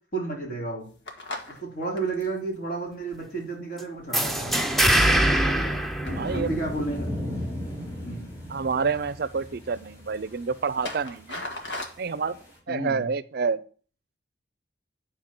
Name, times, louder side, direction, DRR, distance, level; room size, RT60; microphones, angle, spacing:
voice 1, 0.1-0.9 1.5-4.6 6.0-7.1 8.0-8.3 12.7-13.1, right 3 dB, 50° left, -2 dB, 3.9 m, -32 dB
sound 1, 0.8-4.8 5.2-5.8 6.0-7.4 8.0-8.6 8.9-9.0 9.3-11.9, left 2 dB, 90° left, 1.8 m, -41 dB
sound 2, 4.1-6.8, right 1 dB, ahead, 0.8 m, -23 dB
sound 3, 6.1-11.5 11.8-11.9 12.1-12.2 12.4-12.5, equal, 15° left, 4.8 m, -35 dB
voice 2, 6.2-6.6 8.5-11.4 12.0-12.4 12.7-13.6, right 5 dB, 60° right, 16 dB, 0.5 m, -28 dB
10.0 x 4.6 x 6.0 m, 0.41 s
head